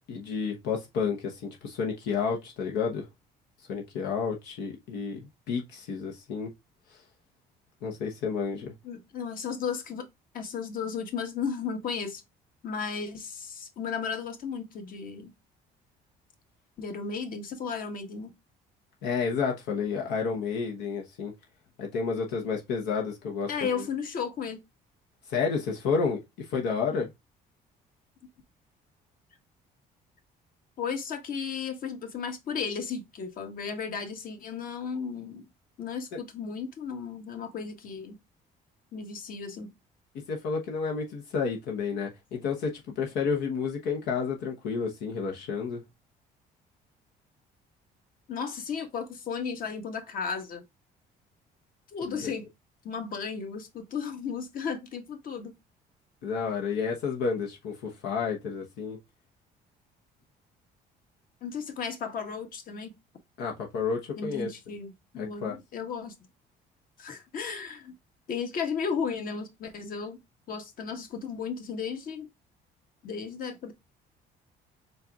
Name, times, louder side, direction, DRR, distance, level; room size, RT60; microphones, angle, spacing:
voice 1, 0.1-3.1 3.7-5.2 5.5-6.5 6.9-7.0 7.8-8.7 19.0-21.3 21.8-23.5 23.8-23.9 25.3-27.1 40.1-45.8 52.1-52.3 56.2-59.0 63.4-64.5 65.2-65.6, left 5 dB, 85° left, 1.0 m, -30 dB
voice 2, 8.8-10.0 10.3-12.2 12.6-15.3 16.8-18.3 23.5-24.6 30.8-35.4 35.8-38.1 38.9-39.7 48.3-50.6 51.9-52.5 52.8-55.5 61.4-62.9 64.2-66.1 67.0-67.9 68.3-70.2 70.5-72.3 73.0-73.7, left 6 dB, 55° left, 1.4 m, -34 dB
4.4 x 4.0 x 2.4 m
cardioid pair, 110°, 17 cm